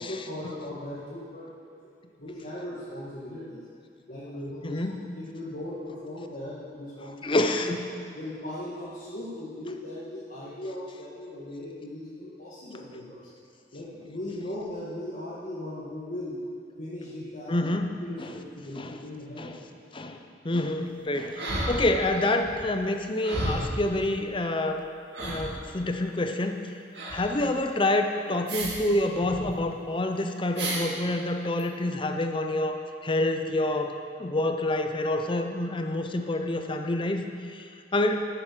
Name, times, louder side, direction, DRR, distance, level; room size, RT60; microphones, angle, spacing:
voice 1, 0.0-1.5 1.8-1.9 2.2-3.6 4.1-4.8 5.1-7.4 8.1-13.2 13.7-16.4 16.8-17.6 18.0-19.5, left 1 dB, 50° left, -9 dB, 1.9 m, -38 dB
voice 2, 4.6-5.0 7.2-7.9 17.5-18.3 18.8-19.0 19.4-19.6 19.9-20.2 20.4-24.8 25.2-26.6 27.1-32.8 33.0-38.2, left 1 dB, 30° left, 5 dB, 0.7 m, -27 dB
sound 1, 21.4-22.2 22.5-22.6 23.2-23.8 24.7-24.8 25.1-25.7 26.9-27.3 28.5-28.8 29.1-29.4 30.6-30.8 31.6-31.7, right 1 dB, 70° right, 2.5 m, -32 dB
12.5 x 7.8 x 6.4 m, 2.3 s
head